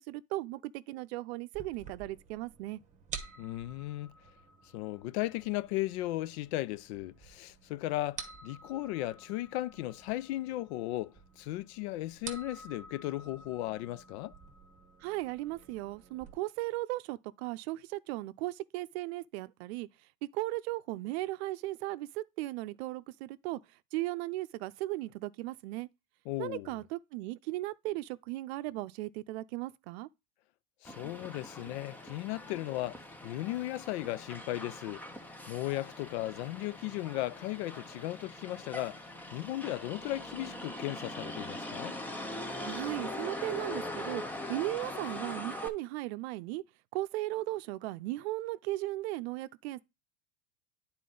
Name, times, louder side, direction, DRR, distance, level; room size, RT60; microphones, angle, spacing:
voice 1, 0.1-2.8 15.0-19.9 20.3-23.6 23.9-25.9 26.4-30.1 42.6-44.2 44.5-46.6 46.9-49.8, right 18 dB, 65° right, 0.6 m, -36 dB
sound 1, 1.5-16.3, right 5 dB, 20° right, 1.0 m, -50 dB
voice 2, 3.4-4.1 4.7-14.3 26.3-26.8 30.8-35.0 35.5-39.0 39.3-42.0, left 16 dB, 65° left, 0.5 m, -36 dB
Motor vehicle (road), 30.8-45.7, left 1 dB, 5° left, 0.5 m, -42 dB
9.5 x 4.2 x 3.8 m
supercardioid pair, 145°, 35 cm